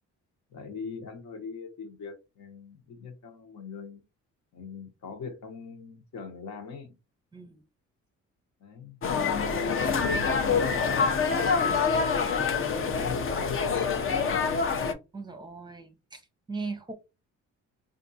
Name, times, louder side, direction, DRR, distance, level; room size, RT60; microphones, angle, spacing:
voice 1, 0.5-4.0 4.5-6.9 8.6-9.0 9.3-12.0 12.6-14.6, left 4 dB, 70° left, 1.1 m, -41 dB
voice 2, 7.3-7.6 15.1-16.2 16.5-16.9, right 4 dB, 15° right, 0.7 m, -38 dB
sound 1, 9.0-14.9, left 5 dB, 45° left, 0.6 m, -26 dB
3.6 x 2.6 x 2.7 m
cardioid pair, 90°, 30 cm